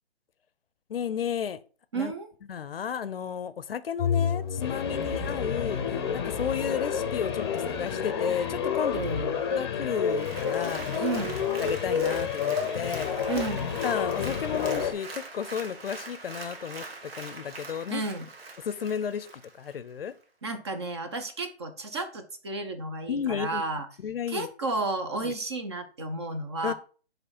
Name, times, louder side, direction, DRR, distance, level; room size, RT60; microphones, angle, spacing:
voice 1, 0.9-1.6 1.9-2.1 2.5-5.8 6.1-9.0 9.5-11.0 11.6-13.3 13.8-18.0 18.6-19.3 19.6-20.1 23.1-23.6 24.0-24.5 25.2-25.3 26.6-26.7, left 8 dB, 60° left, 15 dB, 0.6 m, -33 dB
voice 2, 1.9-2.3 8.9-9.4 11.0-11.3 13.3-13.7 17.9-18.2 20.4-23.9 24.3-26.7, right 3 dB, 25° right, 7 dB, 0.6 m, -32 dB
sound 1, 4.0-14.9, left 7 dB, 25° left, 0.7 m, -29 dB
Applause, 10.0-19.8 20.2-20.3, right 3 dB, 65° right, 1.6 m, -42 dB
9.4 x 3.2 x 4.2 m, 0.39 s
hypercardioid pair, 160°, 33 cm